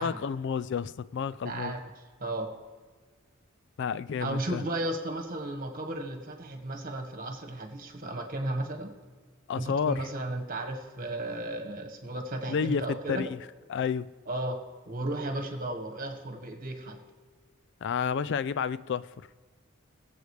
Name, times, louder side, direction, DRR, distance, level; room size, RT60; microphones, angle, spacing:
voice 1, 0.0-1.8 3.8-4.6 9.5-10.1 12.5-13.4 13.7-14.1 17.8-19.1, left 6 dB, 55° left, 0.3 m, -30 dB
voice 2, 1.4-1.8 2.2-2.5 4.2-8.9 9.6-13.3 14.3-14.6 14.9-17.0, right 1 dB, 40° right, 1.5 m, -34 dB
21.5 x 7.9 x 3.3 m
head